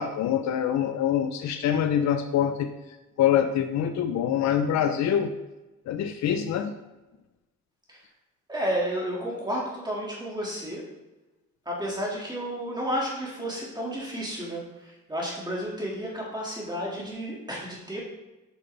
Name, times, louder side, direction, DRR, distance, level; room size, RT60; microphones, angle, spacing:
voice 1, 0.0-2.7 3.2-5.4 5.9-6.7, left 9 dB, 65° left, 8 dB, 0.5 m, -25 dB
voice 2, 8.5-10.8 11.7-18.0, equal, 15° right, -4 dB, 2.0 m, -32 dB
8.0 x 5.2 x 3.3 m, 1.1 s
cardioid pair, 110°, 29 cm